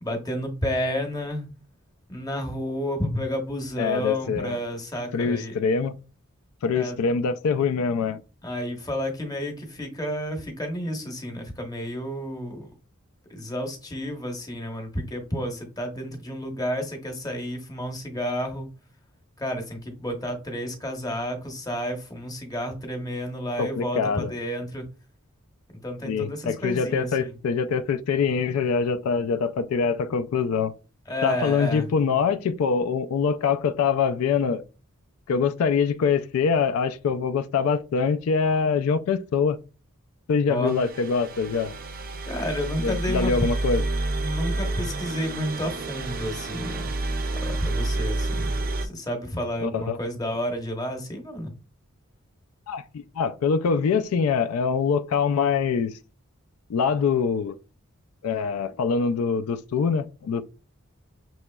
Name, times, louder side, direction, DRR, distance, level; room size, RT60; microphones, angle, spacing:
voice 1, 0.0-1.5 2.1-5.6 6.7-7.0 8.4-12.7 13.3-18.7 19.4-24.8 25.8-27.3 31.1-31.8 40.5-40.8 42.3-43.3 44.2-46.9 47.5-51.5, equal, 20° left, 0.9 m, -31 dB
voice 2, 3.8-4.6 5.1-5.9 6.6-8.2 23.6-24.3 26.0-30.7 31.2-34.6 35.3-39.6 40.3-41.7 42.8-43.8 49.6-50.0 52.7-56.0 56.7-57.6 58.2-60.4, left 5 dB, 80° left, 0.3 m, -24 dB
sound 1, 40.7-48.9, right 2 dB, 45° right, 0.5 m, -29 dB
6.1 x 2.9 x 2.2 m
head